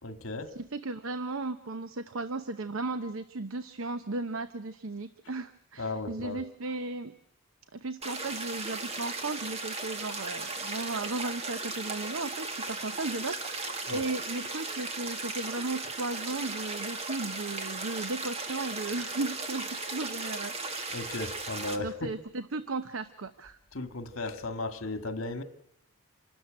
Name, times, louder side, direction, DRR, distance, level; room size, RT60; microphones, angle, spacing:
voice 1, 0.0-0.5 5.8-6.4 13.9-14.1 20.9-22.1 23.7-25.4, left 2 dB, 65° left, 1.8 m, -35 dB
voice 2, 0.5-7.1 7.7-20.5 21.8-23.6, right 3 dB, 65° right, 0.9 m, -35 dB
sound 1, 8.0-21.8, right 3 dB, 30° right, 1.8 m, -36 dB
27.0 x 13.0 x 9.0 m
head